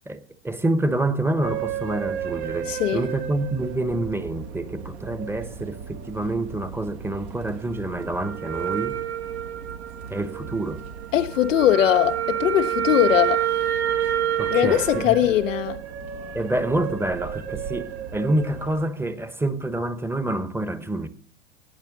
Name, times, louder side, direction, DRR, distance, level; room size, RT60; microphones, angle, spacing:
voice 1, 0.1-9.0 10.1-10.8 14.4-15.2 16.3-21.1, right 1 dB, 5° right, 1.1 m, -27 dB
sound 1, 1.4-18.8, right 10 dB, 55° right, 1.6 m, -30 dB
voice 2, 2.7-3.1 11.1-13.4 14.5-15.8, left 12 dB, 75° left, 0.6 m, -20 dB
17.5 x 9.0 x 3.9 m
hypercardioid pair, 95°, 38 cm